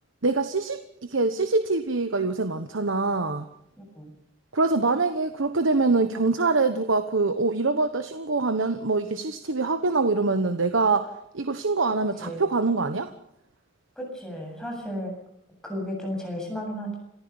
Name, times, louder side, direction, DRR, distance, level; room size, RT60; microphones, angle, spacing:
voice 1, 0.2-3.5 4.5-13.1, right 3 dB, 90° right, 10 dB, 1.1 m, -24 dB
voice 2, 14.0-15.1 15.6-17.0, equal, 5° left, 0 dB, 7.7 m, -33 dB
27.5 x 14.5 x 7.1 m, 0.79 s
head